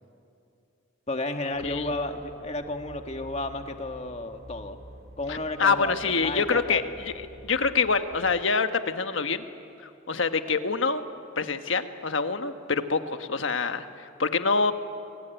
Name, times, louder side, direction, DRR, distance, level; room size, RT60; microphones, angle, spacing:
voice 1, 1.1-4.8 5.2-6.8, left 2 dB, 30° left, 5 dB, 1.6 m, -32 dB
sound 1, 1.5-8.4, equal, 50° right, 2.1 m, -48 dB
voice 2, 5.3-9.4 9.8-11.0 11.4-14.7, left 4 dB, 80° left, 8 dB, 1.3 m, -26 dB
28.5 x 23.0 x 9.1 m, 2.6 s
head